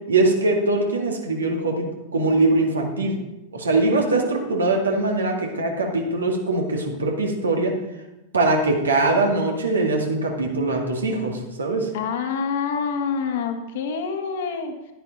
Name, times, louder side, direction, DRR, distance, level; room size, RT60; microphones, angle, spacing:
voice 1, 0.1-1.9 2.1-3.1 3.5-7.7 8.3-11.9, right 2 dB, 70° right, 1 dB, 2.0 m, -22 dB
voice 2, 11.9-14.7, left 6 dB, 55° left, 5 dB, 1.6 m, -26 dB
11.0 x 10.0 x 4.1 m, 0.98 s
figure-of-eight pair, 90°, 0 cm